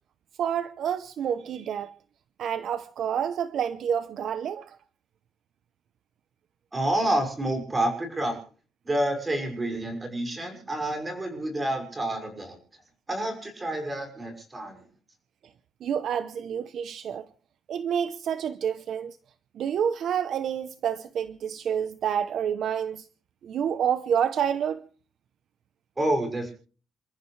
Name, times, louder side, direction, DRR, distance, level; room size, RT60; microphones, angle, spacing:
voice 1, 0.4-1.9 2.4-4.8 15.8-17.3 17.7-19.2 19.5-23.1 23.4-24.8, right 8 dB, 50° right, 0.8 m, -28 dB
voice 2, 6.7-8.4 8.8-12.6 13.1-14.8 26.0-26.5, right 1 dB, 15° right, 6.0 m, -28 dB
28.5 x 14.0 x 3.3 m
cardioid pair, 175°, 0 cm